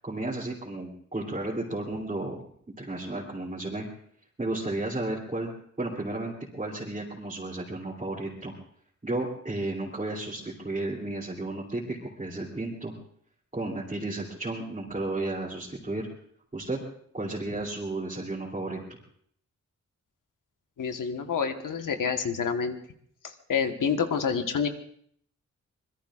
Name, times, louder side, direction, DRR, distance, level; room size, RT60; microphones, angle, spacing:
voice 1, 0.0-2.4 2.8-3.8 4.4-5.5 5.8-8.5 9.0-12.9 13.5-16.1 16.5-16.8 17.1-18.8, right 2 dB, 25° right, -5 dB, 3.0 m, -33 dB
voice 2, 20.8-22.8 23.5-24.7, left 6 dB, 85° left, 6 dB, 1.4 m, -27 dB
25.5 x 21.5 x 2.5 m, 0.64 s
wide cardioid pair, 125°, 31 cm